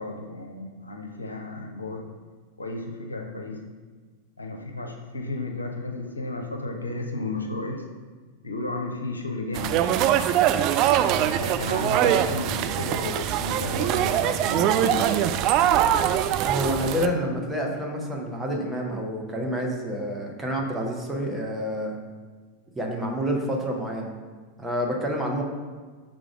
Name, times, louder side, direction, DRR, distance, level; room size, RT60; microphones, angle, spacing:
voice 1, 0.0-2.1 2.6-3.6 4.4-7.8 8.4-9.9 11.0-15.1, left 2 dB, 80° left, 2 dB, 0.8 m, -33 dB
sound 1, 9.5-17.1, right 10 dB, 40° right, 0.3 m, -23 dB
voice 2, 16.4-22.0 22.7-24.1 24.6-25.4, equal, 10° right, 0 dB, 1.1 m, -28 dB
6.3 x 3.8 x 4.9 m, 1.4 s
figure-of-eight pair, 90°, 0 cm